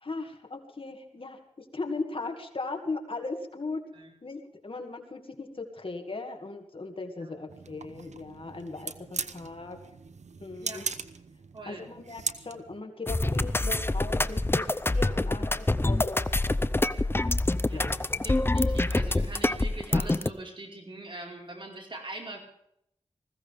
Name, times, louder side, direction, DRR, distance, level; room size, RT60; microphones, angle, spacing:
voice 1, 0.0-3.8 4.2-9.8 10.4-10.8 11.7-16.3 17.7-18.0 18.5-18.6, left 3 dB, 50° left, 4 dB, 2.2 m, -38 dB
sound 1, 7.5-12.8, right 5 dB, 85° right, 0.9 m, -39 dB
voice 2, 11.5-11.9 17.6-22.4, right 2 dB, 45° right, 0 dB, 4.8 m, -43 dB
sound 2, 13.1-20.3, left 2 dB, 20° left, 0.6 m, -26 dB
20.5 x 16.0 x 3.6 m, 0.73 s
wide cardioid pair, 90°, 12 cm